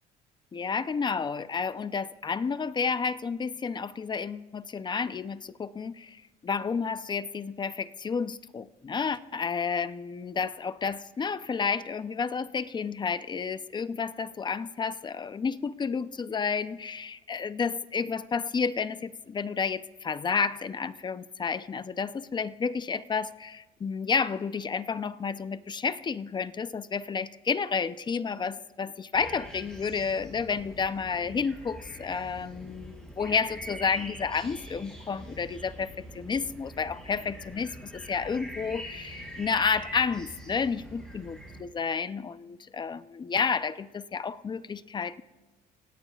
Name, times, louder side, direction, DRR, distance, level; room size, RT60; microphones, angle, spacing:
voice 1, 0.5-45.2, left 5 dB, 25° left, 14 dB, 0.6 m, -31 dB
sound 1, 29.1-41.6, right 1 dB, 5° left, 6.1 m, -44 dB
29.0 x 17.0 x 2.4 m, 1.2 s
cardioid pair, 110°, 17 cm